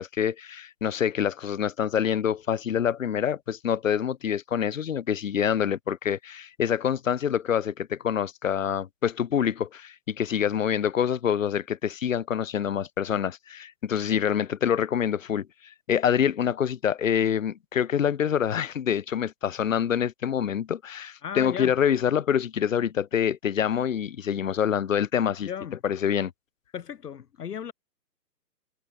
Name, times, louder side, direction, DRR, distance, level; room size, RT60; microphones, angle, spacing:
voice 1, 0.0-15.5 15.9-25.5 25.8-26.3, left 8 dB, 50° left, 1.3 m, -26 dB
voice 2, 21.2-21.7 25.4-25.8 26.7-27.7, left 8 dB, 70° left, 1.2 m, -35 dB
hypercardioid pair, 170°, 49 cm